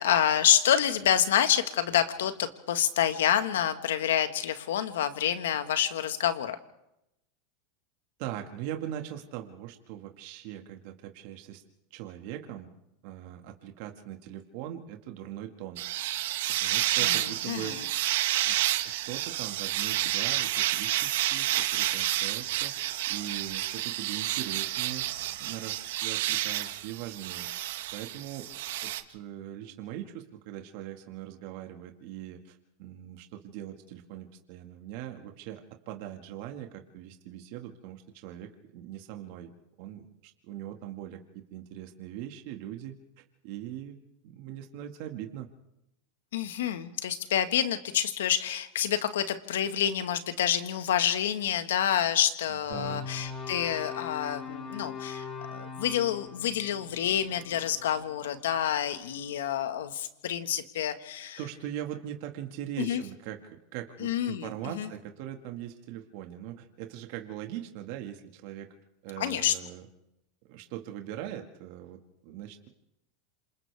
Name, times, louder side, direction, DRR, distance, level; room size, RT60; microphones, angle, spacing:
voice 1, 0.0-6.6 17.0-17.8 46.3-61.4 62.8-63.0 64.0-64.9 69.2-69.5, left 10 dB, 90° left, 9 dB, 1.6 m, -28 dB
voice 2, 8.2-11.6 11.9-12.7 13.0-15.8 16.6-17.9 18.4-18.6 18.8-22.7 23.1-25.1 25.4-25.8 26.0-27.5 27.9-28.5 28.8-39.5 39.8-43.0 43.4-44.0 44.2-45.5 52.7-53.0 61.4-68.7 69.0-69.9 70.4-72.7, right 11 dB, 60° right, 4 dB, 2.0 m, -41 dB
sound 1, 15.8-29.0, right 14 dB, 75° right, 1.2 m, -30 dB
sound 2, 52.7-58.9, left 5 dB, 35° left, 6.8 m, -41 dB
27.5 x 27.0 x 3.5 m, 0.86 s
supercardioid pair, 130°, 0 cm